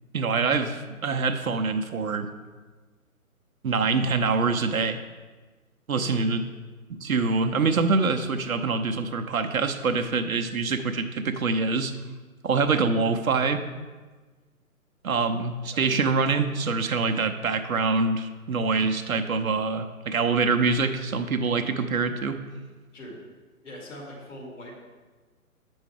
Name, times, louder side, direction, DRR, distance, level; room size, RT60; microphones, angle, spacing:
voice 1, 0.1-2.3 3.6-5.0 5.9-6.4 6.9-11.9 12.4-13.6 15.0-22.4, right 4 dB, 65° right, 6 dB, 0.7 m, -25 dB
voice 2, 5.9-6.3 15.7-16.0 22.9-23.2 23.6-24.8, equal, 55° left, -3 dB, 2.5 m, -42 dB
8.0 x 6.2 x 3.3 m, 1.3 s
figure-of-eight pair, 135°, 44 cm